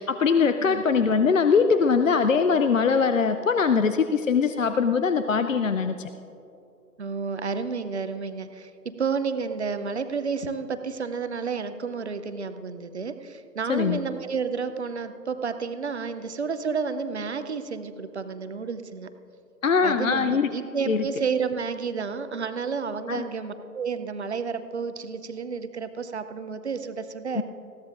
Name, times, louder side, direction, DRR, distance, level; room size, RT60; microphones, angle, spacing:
voice 1, 0.0-6.1 13.7-14.0 19.6-20.5 20.9-21.1 23.1-23.2 27.4-27.5, left 5 dB, 55° left, 9 dB, 0.5 m, -22 dB
voice 2, 7.0-19.1 19.8-27.4, right 5 dB, 45° right, 10 dB, 0.7 m, -31 dB
20.5 x 15.5 x 2.5 m, 2.8 s
figure-of-eight pair, 140°, 50 cm